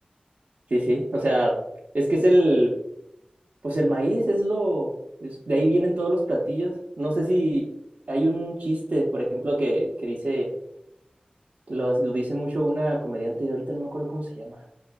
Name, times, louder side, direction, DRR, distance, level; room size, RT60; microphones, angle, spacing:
voice 1, 0.7-1.6 1.9-2.7 3.6-4.9 5.2-7.7 8.1-10.5 11.7-14.6, right 1 dB, 85° right, -5 dB, 0.6 m, -24 dB
5.6 x 2.4 x 2.2 m, 0.80 s
wide cardioid pair, 45°, 3 cm